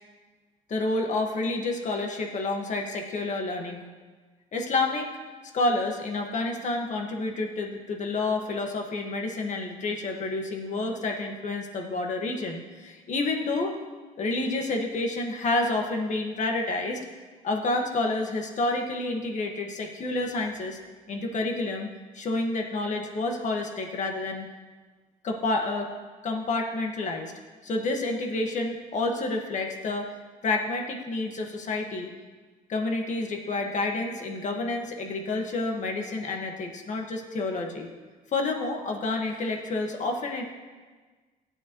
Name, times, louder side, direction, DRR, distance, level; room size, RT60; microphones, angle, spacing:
voice 1, 0.7-3.8 4.5-5.1 5.5-13.8 14.2-17.0 17.4-20.8 21.1-21.9 22.1-24.5 25.2-25.9 26.2-27.3 27.6-30.1 30.4-32.1 32.7-37.9 38.3-40.4, left 2 dB, 45° left, 2 dB, 1.8 m, -29 dB
16.0 x 9.3 x 3.2 m, 1.4 s
cardioid pair, 110°, 17 cm